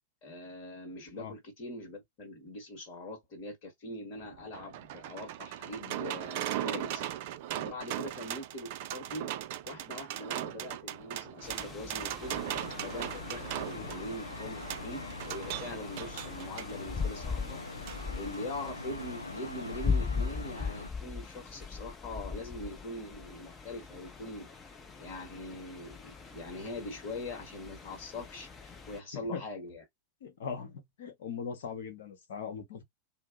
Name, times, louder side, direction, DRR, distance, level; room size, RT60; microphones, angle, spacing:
voice 1, 0.2-7.0 7.6-9.3 9.6-17.6 18.2-24.7 25.0-29.8, left 1 dB, 40° left, 1.2 m, -42 dB
sound 1, 4.2-16.7 17.9-18.0 18.3-18.4, right 12 dB, 50° right, 0.3 m, -38 dB
sound 2, 11.4-29.0, left 5 dB, 20° left, 0.6 m, -40 dB
sound 3, 12.2-20.9, left 2 dB, 80° left, 0.4 m, -43 dB
voice 2, 30.2-32.8, left 6 dB, 60° left, 0.9 m, -40 dB
2.7 x 2.0 x 3.6 m
figure-of-eight pair, 90°, 0 cm